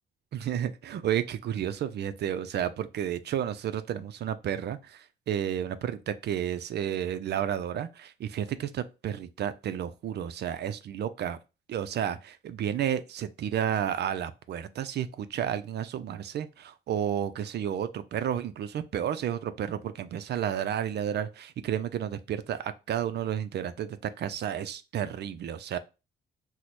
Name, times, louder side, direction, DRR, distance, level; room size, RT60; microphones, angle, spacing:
voice 1, 0.3-11.4 11.7-25.8, right 9 dB, 60° right, 0.4 m, -31 dB
3.0 x 2.1 x 4.1 m
cardioid pair, 90°, 20 cm